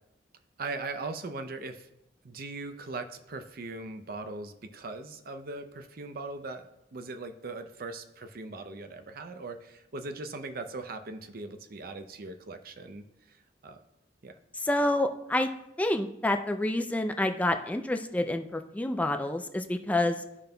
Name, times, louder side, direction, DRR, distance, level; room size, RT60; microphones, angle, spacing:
voice 1, 0.6-1.9 2.2-13.4 13.6-13.8 14.2-14.3, right 3 dB, 55° right, 7 dB, 0.6 m, -40 dB
voice 2, 14.6-15.5 15.8-20.2, left 1 dB, 10° left, 6 dB, 0.3 m, -28 dB
14.0 x 5.2 x 2.2 m, 0.86 s
head